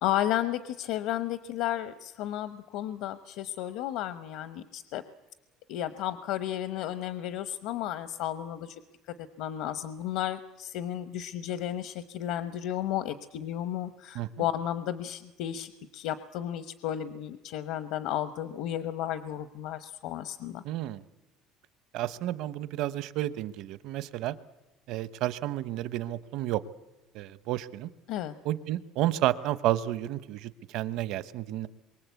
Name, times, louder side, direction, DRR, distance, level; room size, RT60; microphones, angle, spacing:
voice 1, 0.0-5.0 5.7-8.8 9.4-20.6 28.1-28.3, left 12 dB, 75° left, 12 dB, 1.0 m, -33 dB
voice 2, 20.6-21.0 21.9-24.3 24.9-26.6 27.1-27.9 28.4-31.7, right 14 dB, 65° right, 15 dB, 1.0 m, -31 dB
27.0 x 23.5 x 8.3 m, 1.1 s
cardioid pair, 155°, 0 cm